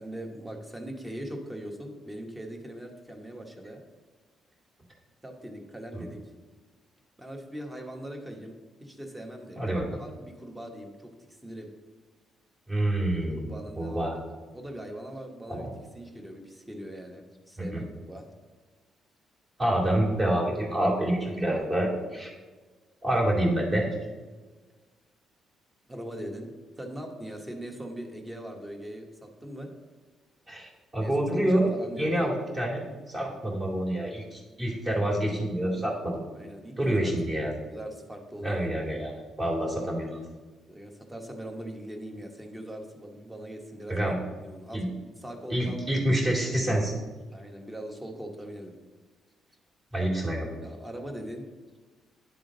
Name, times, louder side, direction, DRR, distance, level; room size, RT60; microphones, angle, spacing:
voice 1, 0.0-3.8 5.2-6.3 7.2-9.7 10.0-11.7 13.4-14.1 14.5-15.7 15.9-18.3 25.9-29.7 31.0-32.2 36.4-37.1 37.7-38.7 40.7-44.1 44.4-46.0 47.3-48.7 50.6-51.5, right 1 dB, 10° right, 2 dB, 1.2 m, -41 dB
voice 2, 9.6-10.0 12.7-13.4 13.8-14.2 15.5-15.7 17.7-17.8 19.6-22.3 23.0-23.9 30.5-31.7 32.0-36.3 36.8-37.5 38.4-40.2 43.9-44.2 44.7-44.9 45.5-47.0 49.9-50.5, right 1 dB, 30° right, -3 dB, 2.1 m, -27 dB
9.9 x 3.7 x 3.9 m, 1.3 s
cardioid pair, 90°, 0 cm